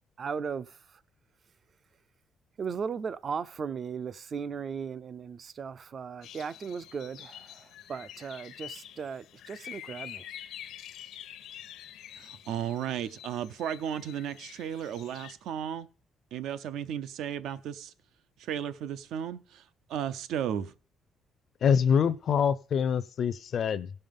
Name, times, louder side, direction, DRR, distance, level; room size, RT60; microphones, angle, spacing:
voice 1, 0.2-1.0 2.6-10.3, right 6 dB, 35° right, 0.4 m, -37 dB
sound 1, 6.2-15.3, left 11 dB, 80° left, 0.8 m, -47 dB
voice 2, 12.2-15.9 16.3-17.9 18.4-19.6 19.9-20.7, right 9 dB, 80° right, 0.6 m, -34 dB
voice 3, 21.6-23.9, left 7 dB, 45° left, 0.5 m, -25 dB
16.5 x 5.6 x 5.2 m
cardioid pair, 165°, 0 cm